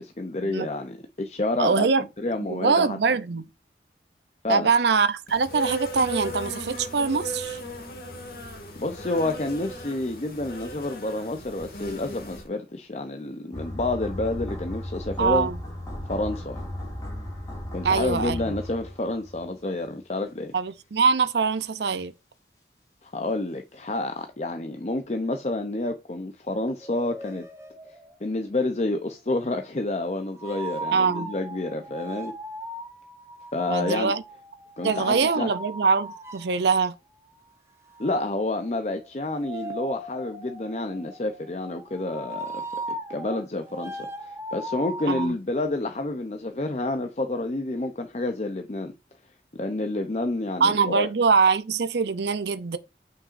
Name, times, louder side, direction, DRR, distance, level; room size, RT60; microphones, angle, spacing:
voice 1, 0.0-1.9 2.2-3.0 4.4-4.7 8.8-15.5 16.1-16.6 17.7-20.5 23.0-27.5 28.2-32.3 33.5-34.1 34.8-35.5 38.0-42.6 43.1-48.9 49.5-51.1, left 2 dB, 40° left, 0.6 m, -29 dB
voice 2, 1.6-2.0 2.4-3.4 4.5-7.6 15.2-15.6 17.8-18.4 20.5-22.1 30.9-31.3 33.7-34.2 34.8-36.9 45.1-45.3 50.6-52.8, right 5 dB, 75° right, 0.6 m, -23 dB
Insect, 5.3-12.5, equal, 55° left, 2.0 m, -37 dB
sound 1, 13.5-19.6 19.9-20.0, left 1 dB, 20° left, 2.3 m, -35 dB
sound 2, 26.8-28.3 30.3-36.6 37.9-45.3, right 1 dB, 15° right, 0.9 m, -38 dB
7.3 x 5.8 x 2.6 m
head